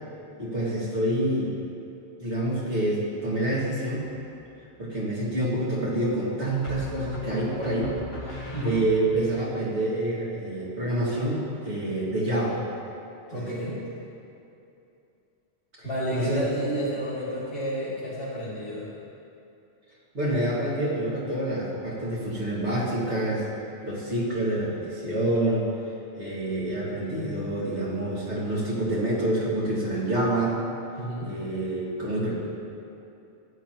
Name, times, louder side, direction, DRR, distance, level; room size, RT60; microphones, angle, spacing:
voice 1, 0.4-1.6 2.2-4.1 4.8-7.9 8.3-12.6 13.3-13.5 15.8-15.9 16.1-16.5 20.1-23.5 23.8-25.7 26.2-30.6 31.2-32.3, right 1 dB, 85° right, -6 dB, 2.5 m, -27 dB
sound 1, 4.0-4.5 6.6-9.3, left 1 dB, 50° left, 2.3 m, -38 dB
voice 2, 8.5-8.8 13.3-13.8 15.8-18.9 31.0-31.3, right 1 dB, 70° left, -11 dB, 2.9 m, -31 dB
14.5 x 10.5 x 3.0 m, 2.7 s
omnidirectional pair, 1.1 m